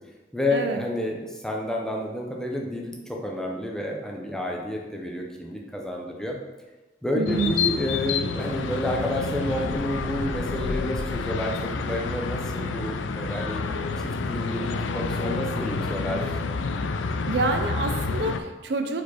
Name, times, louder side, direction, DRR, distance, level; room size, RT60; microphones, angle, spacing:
voice 1, 0.3-6.4 7.0-13.6 14.0-16.4, left 1 dB, 5° left, -1 dB, 0.7 m, -30 dB
voice 2, 7.2-7.5 17.3-19.0, right 3 dB, 60° right, 6 dB, 0.5 m, -27 dB
sound 1, 7.3-18.4, left 4 dB, 80° left, 0.4 m, -29 dB
4.8 x 4.7 x 4.2 m, 1.1 s
head